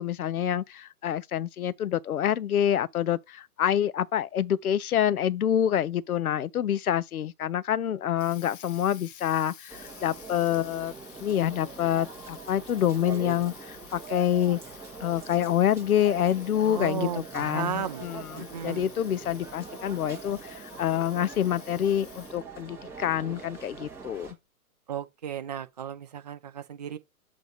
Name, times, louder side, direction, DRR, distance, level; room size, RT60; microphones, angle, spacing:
voice 1, 0.0-10.9 11.2-14.6 15.0-24.4, left 10 dB, 70° left, 0.7 m, -27 dB
Water tap faucet, 7.9-22.6, left 9 dB, 35° left, 0.7 m, -51 dB
sound 1, 9.7-24.3, right 4 dB, 5° right, 1.2 m, -43 dB
voice 2, 16.6-18.1 18.4-18.9 24.9-27.0, right 9 dB, 30° right, 0.4 m, -34 dB
7.4 x 2.7 x 5.4 m
figure-of-eight pair, 125°, 45 cm